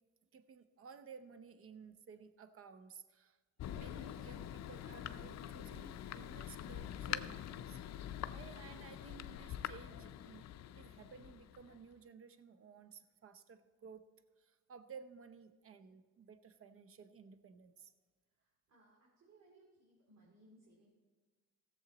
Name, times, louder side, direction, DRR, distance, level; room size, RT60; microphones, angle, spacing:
voice 1, 0.3-7.8 8.3-10.4 10.7-14.0 14.4-17.9, right 6 dB, 45° right, 11 dB, 0.8 m, -56 dB
Thunder, 3.6-11.9, left 11 dB, 60° left, 0.5 m, -45 dB
voice 2, 18.3-20.9, right 1 dB, 60° right, -3 dB, 2.5 m, -66 dB
16.5 x 7.2 x 4.0 m, 1.4 s
cardioid pair, 90°, 30 cm